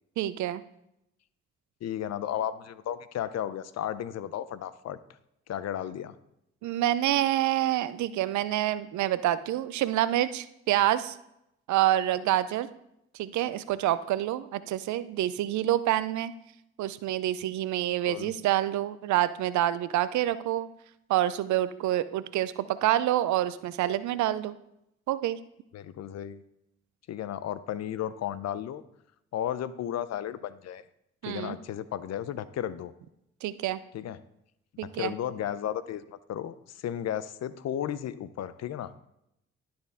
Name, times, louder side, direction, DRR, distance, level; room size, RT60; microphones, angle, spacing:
voice 1, 0.2-0.6 6.6-11.2 11.7-12.7 13.2-16.3 16.8-20.7 21.1-24.5 25.1-25.4 31.2-31.6 33.4-33.8 34.8-35.1, right 13 dB, 70° right, 15 dB, 0.5 m, -27 dB
voice 2, 1.8-5.0 5.5-6.1 18.0-18.3 25.7-26.4 27.1-28.8 29.3-30.8 31.2-32.9 33.9-34.2 34.8-38.9, left 10 dB, 55° left, 15 dB, 0.6 m, -34 dB
12.0 x 4.4 x 3.6 m, 0.82 s
hypercardioid pair, 45°, 31 cm